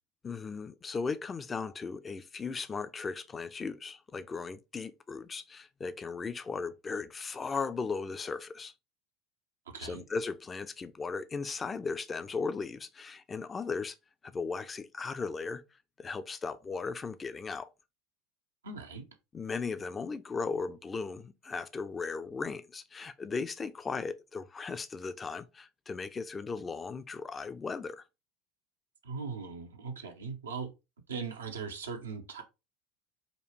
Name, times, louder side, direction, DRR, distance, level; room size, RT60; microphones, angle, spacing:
voice 1, 0.2-8.7 9.8-14.0 14.2-15.6 16.0-17.7 19.3-28.0, left 4 dB, 25° left, 0.5 m, -37 dB
voice 2, 9.7-10.0 18.6-19.0 29.0-30.7 31.1-32.4, right 5 dB, 85° right, 0.7 m, -39 dB
5.1 x 2.3 x 3.2 m
hypercardioid pair, 80°, 0 cm